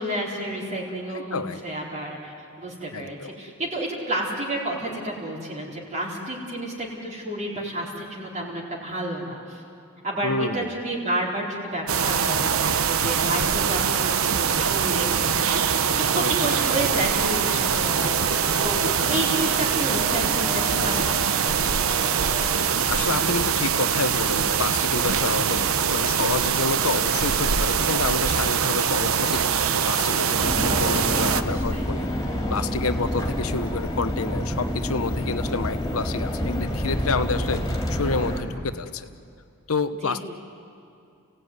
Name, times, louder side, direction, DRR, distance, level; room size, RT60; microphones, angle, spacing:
voice 1, 0.0-9.6 10.0-18.8 19.1-21.6 30.7-31.9 40.0-40.2, right 1 dB, 35° right, -3 dB, 4.2 m, -31 dB
voice 2, 1.1-1.8 2.9-3.3 10.2-10.6 16.2-16.3 16.6-16.8 17.6-18.3 22.9-32.1 32.5-37.6 37.9-39.1 39.7-40.2, left 4 dB, 85° left, 11 dB, 1.0 m, -29 dB
sound 1, 11.9-31.4, right 7 dB, 70° right, 0.9 m, -23 dB
sound 2, 16.4-22.9, equal, 5° right, 2.2 m, -38 dB
sound 3, 30.4-38.4, equal, 15° left, 3.2 m, -28 dB
29.5 x 17.0 x 9.6 m, 2.6 s
head